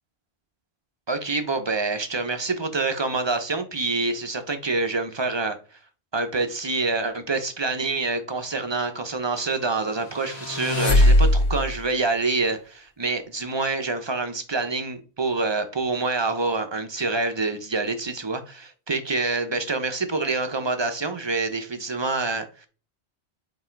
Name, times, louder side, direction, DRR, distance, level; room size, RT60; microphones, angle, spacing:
voice 1, 1.1-5.6 6.1-22.7, right 3 dB, 25° right, 0.8 m, -26 dB
sound 1, 10.0-11.8, left 1 dB, 70° left, 1.5 m, -19 dB
7.3 x 3.1 x 4.5 m
omnidirectional pair, 1.1 m